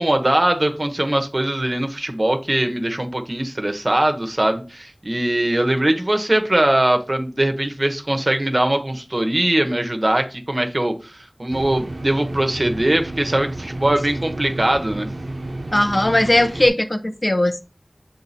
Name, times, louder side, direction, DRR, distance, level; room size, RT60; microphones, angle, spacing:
voice 1, 0.0-15.1, right 1 dB, 45° right, 6 dB, 1.1 m, -21 dB
sound 1, 11.5-16.7, right 1 dB, 85° right, 0.8 m, -31 dB
voice 2, 15.7-17.6, left 1 dB, 40° left, 7 dB, 0.9 m, -18 dB
6.6 x 3.8 x 4.2 m, 0.32 s
wide cardioid pair, 45°, 0 cm